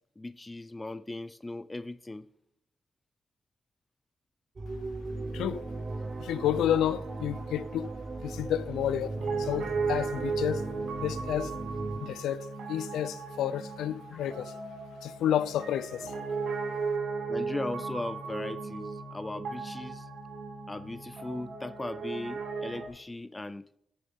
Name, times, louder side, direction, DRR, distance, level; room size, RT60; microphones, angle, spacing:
voice 1, 0.2-2.3 14.1-14.2 17.3-20.1 20.7-23.6, left 2 dB, 15° left, 0.4 m, -38 dB
sound 1, 4.6-12.0, right 2 dB, 35° right, 1.1 m, -38 dB
voice 2, 5.3-5.6 6.2-7.9 8.2-10.6 11.0-11.5 12.0-14.5 15.0-16.1, left 10 dB, 90° left, 0.5 m, -30 dB
Piano, 9.2-22.9, right 4 dB, 75° right, 2.9 m, -36 dB
15.0 x 8.7 x 3.6 m
cardioid pair, 85°, 0 cm